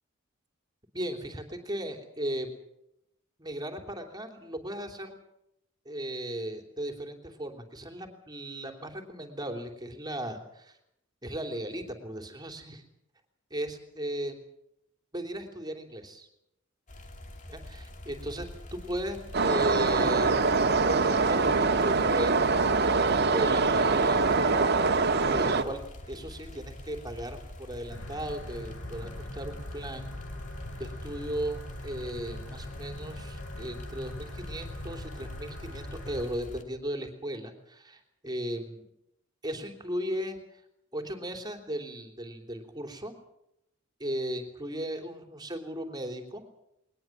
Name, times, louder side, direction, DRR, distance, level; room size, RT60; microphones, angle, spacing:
voice 1, 0.9-2.6 3.4-5.2 5.8-10.7 11.2-12.8 13.5-14.4 15.1-16.3 17.5-20.3 20.9-24.4 25.3-25.8 26.1-30.1 30.7-38.8 39.4-40.4 40.9-43.1 44.0-46.4, right 1 dB, 20° right, 5 dB, 3.3 m, -36 dB
sound 1, 16.9-36.6, left 1 dB, 40° left, 2.6 m, -45 dB
sound 2, 19.3-25.6, right 4 dB, 55° right, 2.0 m, -24 dB
sound 3, 27.9-36.3, left 1 dB, 80° left, 4.9 m, -42 dB
21.5 x 20.0 x 7.4 m, 0.79 s
head